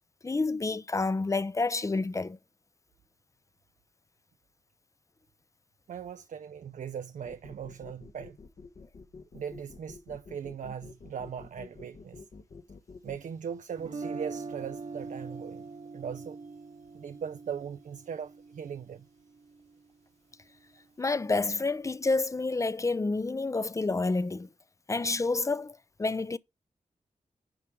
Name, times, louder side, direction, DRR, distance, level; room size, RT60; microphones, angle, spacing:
voice 1, 0.2-2.4 21.0-24.5 24.9-26.4, left 3 dB, 25° left, 0.5 m, -29 dB
voice 2, 5.9-8.4 9.3-12.2 13.0-16.5 16.9-19.1, right 7 dB, 80° right, 0.5 m, -39 dB
sound 1, 7.2-13.2, left 4 dB, 60° left, 1.1 m, -49 dB
Guitar, 13.8-19.8, right 4 dB, 55° right, 1.1 m, -42 dB
10.0 x 3.5 x 4.5 m
wide cardioid pair, 80°, 13 cm